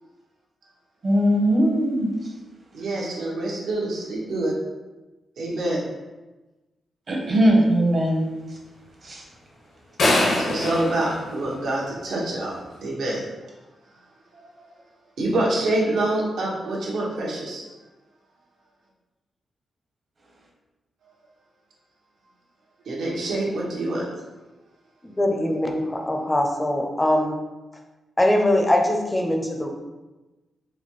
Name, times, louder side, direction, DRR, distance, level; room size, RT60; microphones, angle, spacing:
voice 1, 1.0-2.1 7.1-8.2 9.0-9.2, right 1 dB, 45° right, -1 dB, 0.8 m, -20 dB
voice 2, 2.7-4.5 5.4-5.8 10.3-12.5 12.8-13.2 15.2-17.6 22.9-24.1, right 2 dB, 80° right, -4 dB, 0.9 m, -26 dB
sound 1, 10.0-12.1, left 2 dB, 75° left, 0.8 m, -24 dB
voice 3, 25.0-27.4 28.2-29.7, left 1 dB, 15° left, 3 dB, 0.5 m, -22 dB
4.2 x 2.2 x 3.0 m, 1.1 s
cardioid pair, 105°, 0 cm